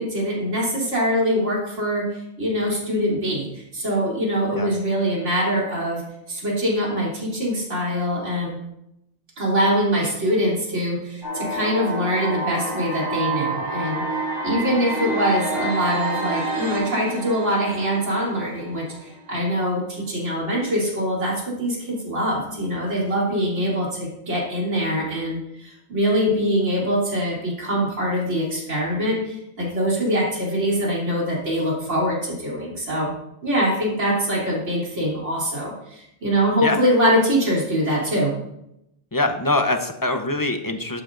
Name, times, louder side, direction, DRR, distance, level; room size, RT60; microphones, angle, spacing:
voice 1, 0.0-8.6 9.4-14.0 14.4-33.1 33.4-38.3, equal, 70° right, -4 dB, 3.6 m, -23 dB
sound 1, 11.2-19.2, right 2 dB, 20° right, 4.5 m, -28 dB
voice 2, 39.1-41.0, left 2 dB, 20° left, 6 dB, 0.6 m, -23 dB
12.0 x 10.5 x 2.6 m, 0.82 s
omnidirectional pair, 1.3 m